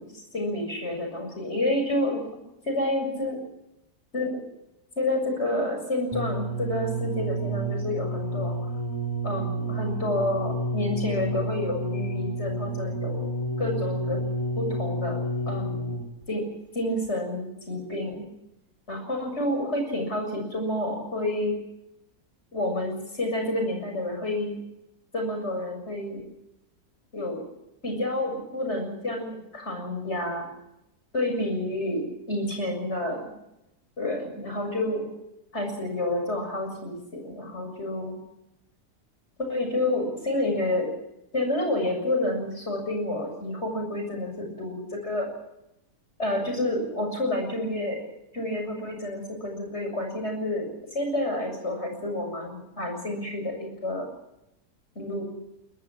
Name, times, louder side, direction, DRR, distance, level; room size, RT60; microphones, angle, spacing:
voice 1, 0.0-2.2 2.6-3.4 4.1-4.4 5.0-8.7 9.2-14.2 14.6-15.2 15.5-15.9 16.3-16.5 16.7-18.2 18.9-21.5 22.5-24.6 25.1-26.2 27.1-27.4 27.8-30.4 31.1-33.3 34.0-35.1 35.5-38.1 39.4-40.9 41.3-45.3 46.2-48.0 48.3-54.1 55.0-55.2, left 1 dB, 40° left, 3 dB, 7.4 m, -29 dB
sound 1, 6.1-16.2 17.0-17.1, right 1 dB, 20° left, 3.6 m, -30 dB
22.5 x 21.0 x 7.5 m, 0.88 s
omnidirectional pair, 1.8 m